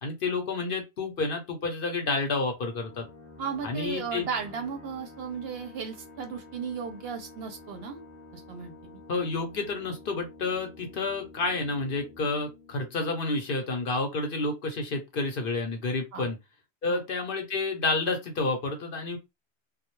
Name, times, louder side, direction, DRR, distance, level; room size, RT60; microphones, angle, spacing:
voice 1, 0.0-3.1 3.6-4.2 9.1-16.4 16.8-19.2, left 3 dB, 55° left, 0.7 m, -30 dB
sound 1, 2.6-13.9, left 2 dB, 15° left, 0.6 m, -50 dB
voice 2, 3.4-8.0 8.3-9.0 16.1-16.3 16.9-17.0, right 6 dB, 65° right, 0.7 m, -35 dB
2.2 x 2.1 x 2.9 m
omnidirectional pair, 1.2 m